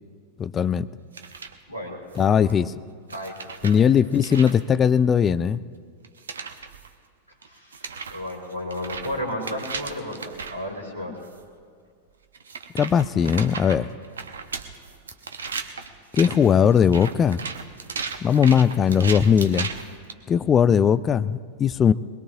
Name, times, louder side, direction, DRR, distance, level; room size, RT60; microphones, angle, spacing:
voice 1, 0.4-0.9 2.2-2.7 3.6-5.6 12.7-13.9 16.1-17.4 18.2-19.7 20.3-21.9, left 7 dB, 25° left, 14 dB, 0.4 m, -19 dB
sound 1, 1.1-1.6 2.1-2.5 3.1-4.6 6.0-6.9 7.4-7.5 7.7-10.6 11.2-11.4 12.3-20.1, right 5 dB, 70° right, 0.9 m, -36 dB
voice 2, 1.7-2.6 3.1-4.0 7.4-11.3, left 1 dB, 85° left, -5 dB, 2.5 m, -34 dB
22.5 x 21.0 x 2.8 m, 2.1 s
figure-of-eight pair, 90°, 0 cm